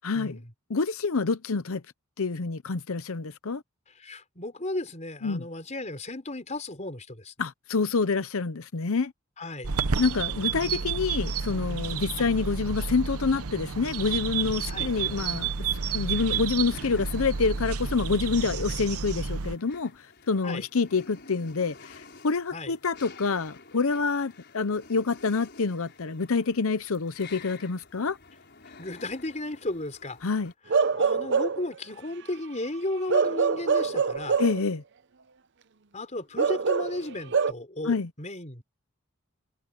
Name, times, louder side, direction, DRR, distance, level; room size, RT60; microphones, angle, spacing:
voice 1, 0.0-0.4 0.7-1.8 2.2-3.6 5.2-5.4 7.4-9.1 10.0-15.5 15.9-19.9 20.3-28.2 30.2-30.5 34.4-34.8 37.8-38.1, left 4 dB, 70° left, 0.7 m, -27 dB
voice 2, 4.0-7.3 9.4-9.7 12.2-12.3 14.7-14.9 20.4-20.7 22.5-22.7 28.8-30.2 30.9-34.4 35.9-38.6, left 2 dB, 30° left, 4.2 m, -34 dB
sound 1, 9.6-19.6, right 5 dB, 85° right, 0.9 m, -31 dB
sound 2, 14.7-30.5, left 4 dB, 50° left, 5.5 m, -51 dB
Bark / Livestock farm animals working animals, 30.7-31.7 33.1-34.6 36.4-37.5, right 5 dB, 55° right, 0.7 m, -24 dB
head